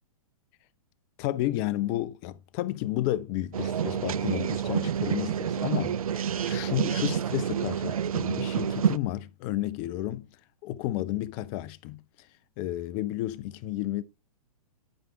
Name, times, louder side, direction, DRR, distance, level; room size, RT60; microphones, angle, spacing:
voice 1, 1.2-10.3 10.6-12.0 12.6-14.0, left 14 dB, 35° left, 0.8 m, -32 dB
sound 1, 3.5-9.0, right 8 dB, 70° right, 0.6 m, -28 dB
11.5 x 5.2 x 4.8 m
hypercardioid pair, 120°, 19 cm